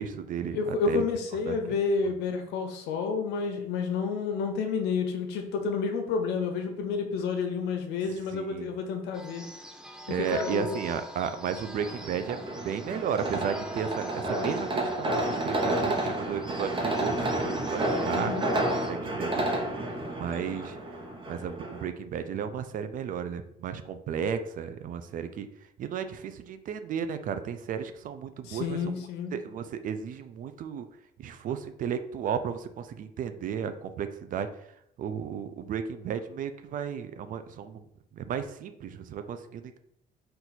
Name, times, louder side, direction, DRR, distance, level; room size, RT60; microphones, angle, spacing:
voice 1, 0.0-1.0 1.5-1.6 2.0-2.1 8.3-8.7 10.1-18.3 18.9-19.8 20.1-20.8 21.3-25.5 25.8-29.0 29.3-30.9 31.2-34.5 35.0-37.8 38.1-39.8, right 7 dB, 55° right, 10 dB, 0.4 m, -34 dB
voice 2, 0.5-9.5 10.1-10.8 18.1-18.4 28.4-29.3, left 5 dB, 85° left, 5 dB, 0.8 m, -30 dB
sound 1, 9.1-18.9, equal, 5° right, 0.6 m, -44 dB
sound 2, 11.8-21.9, right 1 dB, 30° right, 0.9 m, -30 dB
4.4 x 2.5 x 4.1 m, 0.73 s
cardioid pair, 110°, 17 cm